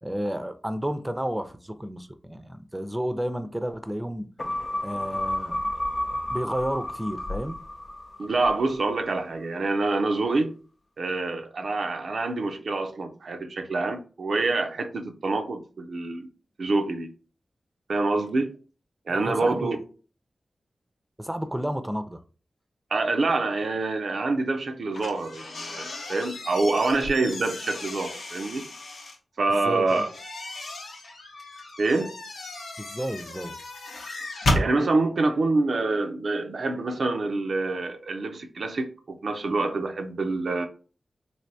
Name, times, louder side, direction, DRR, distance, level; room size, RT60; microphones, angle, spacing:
voice 1, 0.0-4.3 4.8-5.7 6.3-7.6 19.1-19.8 21.2-22.2 29.6-30.0 32.8-33.6, equal, 10° right, 0.5 m, -31 dB
sound 1, 4.4-9.1 9.4-9.5, left 1 dB, 40° left, 0.5 m, -32 dB
voice 2, 8.2-10.5 11.0-16.3 16.6-17.1 17.9-18.6 19.1-19.8 22.9-28.7 29.4-30.1 31.8-32.1 34.5-40.7, right 3 dB, 75° right, 0.4 m, -26 dB
sound 2, 24.9-29.2 29.9-34.7, left 1 dB, 90° left, 0.8 m, -33 dB
3.3 x 2.6 x 2.6 m
cardioid pair, 40°, 0 cm